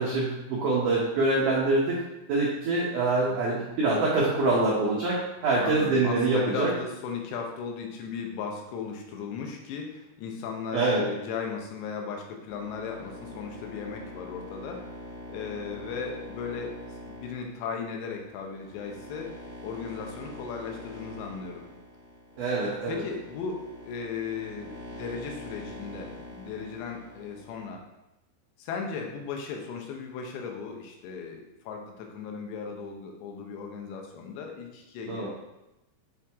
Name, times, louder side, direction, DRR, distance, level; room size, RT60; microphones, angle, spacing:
voice 1, 0.0-2.0 2.3-6.7 10.7-11.0 22.4-22.9 35.1-35.3, right 2 dB, 85° right, -5 dB, 1.8 m, -25 dB
voice 2, 5.6-14.9 15.3-19.3 19.6-21.6 22.9-27.8 28.6-35.3, left 5 dB, 75° left, 2 dB, 3.0 m, -36 dB
sound 1, 12.5-27.7, left 1 dB, 20° left, 1.8 m, -44 dB
8.5 x 4.6 x 3.5 m, 0.94 s
omnidirectional pair, 5.4 m